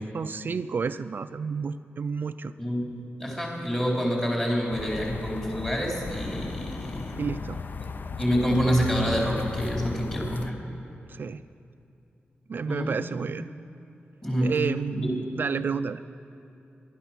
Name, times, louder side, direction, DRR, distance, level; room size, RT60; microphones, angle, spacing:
voice 1, 0.1-2.5 7.2-7.6 11.1-11.4 12.5-13.5 14.4-16.0, right 5 dB, 50° right, 11 dB, 0.3 m, -30 dB
voice 2, 2.6-7.1 8.2-10.6 12.6-12.9 14.2-14.6 15.0-15.2, equal, 15° left, -2 dB, 3.8 m, -27 dB
sound 1, 4.7-10.5, left 5 dB, 50° left, 0.5 m, -36 dB
19.0 x 12.0 x 5.9 m, 2.7 s
wide cardioid pair, 105°, 4 cm